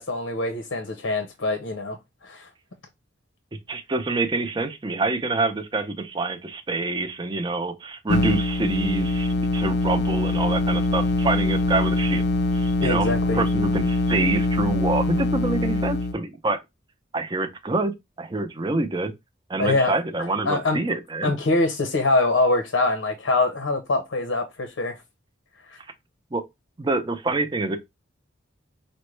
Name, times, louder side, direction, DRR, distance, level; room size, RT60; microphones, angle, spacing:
voice 1, 0.0-2.0 2.2-2.5 12.8-13.4 19.6-20.8 21.2-25.0 25.7-25.8, left 2 dB, 90° left, 0.7 m, -24 dB
voice 2, 3.7-12.2 12.5-16.6 17.1-17.9 18.2-19.1 19.5-21.3 26.3-26.4 26.8-27.8, right 3 dB, 25° right, 0.5 m, -26 dB
sound 1, 8.1-16.1, left 2 dB, 55° left, 0.5 m, -23 dB
5.1 x 2.1 x 3.1 m
head